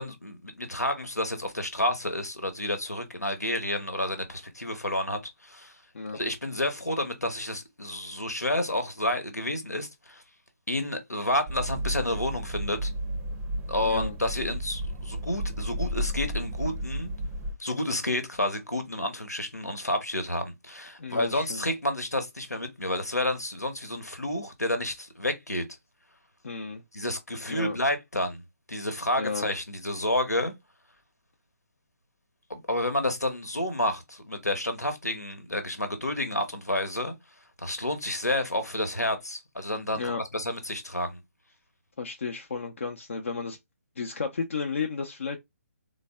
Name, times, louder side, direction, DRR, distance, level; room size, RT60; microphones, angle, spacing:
voice 1, 0.0-5.7 6.1-10.2 10.7-12.9 13.7-17.1 17.6-25.6 26.9-28.4 28.7-30.5 32.5-37.2 37.6-41.2, left 1 dB, 85° left, 1.1 m, -30 dB
sound 1, 11.5-17.5, equal, 15° right, 0.5 m, -32 dB
voice 2, 13.8-14.1 21.0-21.6 26.4-26.8 27.5-27.8 29.2-29.5 40.0-40.2 42.0-43.6 44.0-45.4, left 5 dB, 55° left, 0.6 m, -33 dB
4.0 x 2.2 x 3.4 m
figure-of-eight pair, 140°, 8 cm